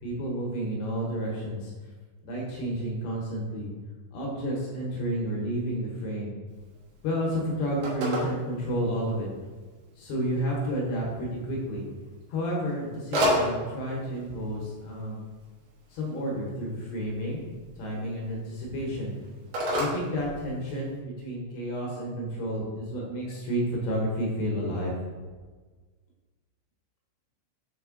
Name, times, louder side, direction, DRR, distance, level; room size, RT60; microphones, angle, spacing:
voice 1, 0.0-1.7 2.2-3.7 4.1-6.3 7.0-9.3 10.0-11.9 12.3-15.2 15.9-17.4 17.8-19.1 19.7-24.9, equal, 75° left, -2 dB, 2.8 m, -31 dB
Telephone, 6.5-21.0, equal, 65° right, 2.3 m, -35 dB
7.0 x 3.7 x 3.6 m, 1.4 s
omnidirectional pair, 5.6 m